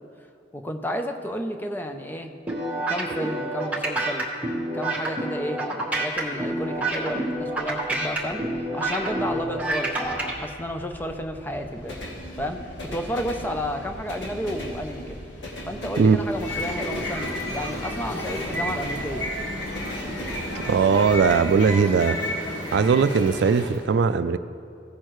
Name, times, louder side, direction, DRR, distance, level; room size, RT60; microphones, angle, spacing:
voice 1, 0.5-2.3 2.9-4.3 4.7-8.4 8.7-12.0 12.3-15.2 15.6-19.3, equal, 10° left, 0.5 m, -31 dB
sound 1, 2.5-10.3, right 1 dB, 10° right, 1.2 m, -28 dB
sound 2, 6.8-21.4, equal, 85° left, 1.5 m, -39 dB
sound 3, 16.2-23.8, left 1 dB, 65° left, 1.5 m, -31 dB
voice 2, 20.6-24.4, right 5 dB, 70° right, 0.3 m, -20 dB
16.0 x 6.5 x 3.1 m
head